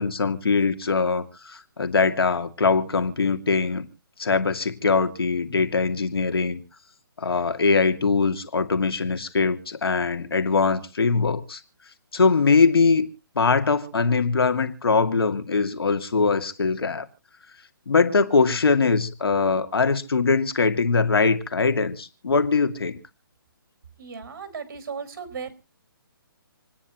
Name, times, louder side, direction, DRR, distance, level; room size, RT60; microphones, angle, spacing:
voice 1, 0.0-3.9 4.2-6.6 7.2-11.6 12.1-13.1 13.4-17.1 17.9-23.0, left 4 dB, 85° left, 2.4 m, -22 dB
voice 2, 24.0-25.5, right 5 dB, 45° right, 4.6 m, -36 dB
28.0 x 9.9 x 3.0 m
hypercardioid pair, 165°, 12 cm